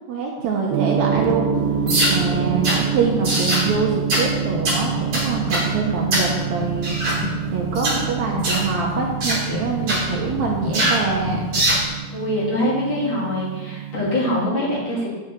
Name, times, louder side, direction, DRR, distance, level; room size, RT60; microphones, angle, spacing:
voice 1, 0.1-1.5 2.1-7.0 7.5-11.4, right 5 dB, 70° right, -1 dB, 1.7 m, -25 dB
Gong, 0.7-14.5, right 8 dB, 90° right, 2.7 m, -27 dB
sound 1, 0.9-11.9, left 4 dB, 85° left, 2.9 m, -32 dB
sound 2, 1.9-2.2 2.6-2.8 3.2-3.7 4.1-4.3 4.6-4.8 5.1-5.7 6.1-6.3 6.8-7.2 7.7-8.0 8.4-8.7 9.2-9.4 9.9-10.0 10.7-11.0 11.5-11.9, right 1 dB, 40° right, 2.7 m, -21 dB
voice 2, 12.1-15.1, left 1 dB, 35° left, -5 dB, 2.6 m, -23 dB
7.1 x 6.3 x 7.1 m, 1.2 s
omnidirectional pair, 4.4 m